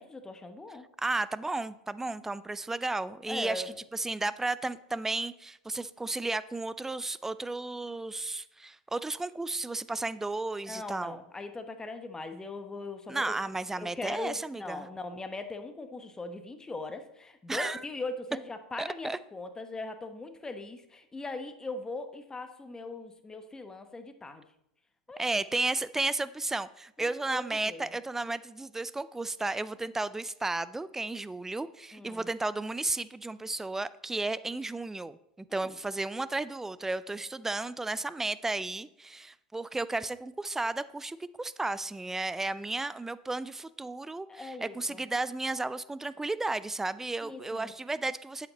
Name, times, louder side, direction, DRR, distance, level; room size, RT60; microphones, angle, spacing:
voice 1, 0.0-0.9 3.3-3.7 10.7-13.4 13.8-24.4 25.1-25.4 27.0-27.9 31.9-32.3 35.5-35.7 44.3-45.0 47.2-47.7, left 3 dB, 15° left, 8 dB, 1.0 m, -40 dB
voice 2, 1.0-11.2 13.1-14.9 17.5-17.8 18.8-19.2 25.2-48.5, right 2 dB, 10° right, 16 dB, 0.4 m, -33 dB
8.4 x 7.1 x 4.1 m, 0.77 s
hypercardioid pair, 85°, 4 cm